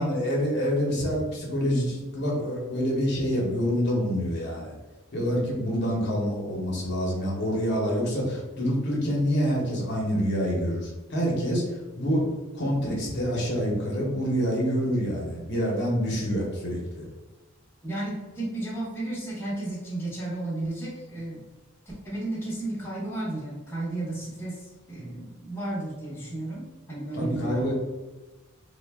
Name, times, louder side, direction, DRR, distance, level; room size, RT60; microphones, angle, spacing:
voice 1, 0.0-4.7 5.1-11.6 11.9-12.2 12.5-17.0 27.1-27.7, equal, 50° left, -3 dB, 0.8 m, -27 dB
voice 2, 17.8-21.5 21.9-27.7, right 2 dB, 10° left, -7 dB, 0.8 m, -33 dB
3.6 x 2.1 x 3.4 m, 1.2 s
head